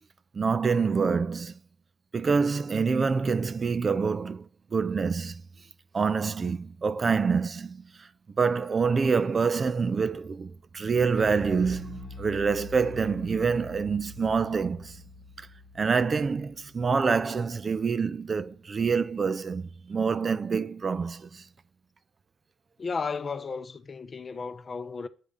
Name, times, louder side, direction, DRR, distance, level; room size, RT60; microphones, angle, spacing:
voice 1, 0.3-1.5 2.1-5.4 5.9-8.1 8.4-15.0 15.4-15.5 15.8-21.5, right 5 dB, 35° right, 0.4 m, -26 dB
Bass guitar, 11.2-17.6, left 3 dB, 55° left, 1.0 m, -45 dB
voice 2, 22.8-25.1, left 5 dB, 35° left, 0.6 m, -34 dB
7.3 x 3.6 x 5.4 m
cardioid pair, 90°, 0 cm